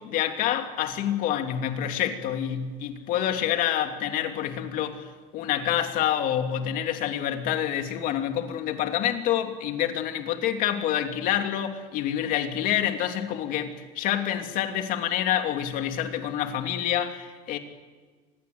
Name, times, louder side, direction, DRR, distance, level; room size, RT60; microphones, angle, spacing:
voice 1, 0.0-17.6, left 10 dB, 60° left, 2.9 m, -27 dB
26.0 x 21.0 x 7.9 m
cardioid pair, 135°, 16 cm